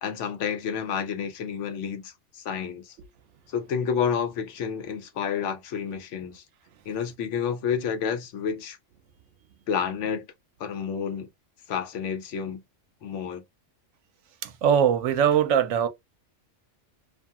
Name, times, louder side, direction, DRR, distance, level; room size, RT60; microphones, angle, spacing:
voice 1, 0.0-3.0 3.5-6.4 6.9-8.8 9.7-10.3 10.6-11.3 11.7-12.6 13.0-13.4, left 7 dB, 80° left, 0.9 m, -30 dB
voice 2, 14.4-15.9, right 8 dB, 75° right, 0.9 m, -21 dB
2.7 x 2.5 x 2.3 m
omnidirectional pair, 1.3 m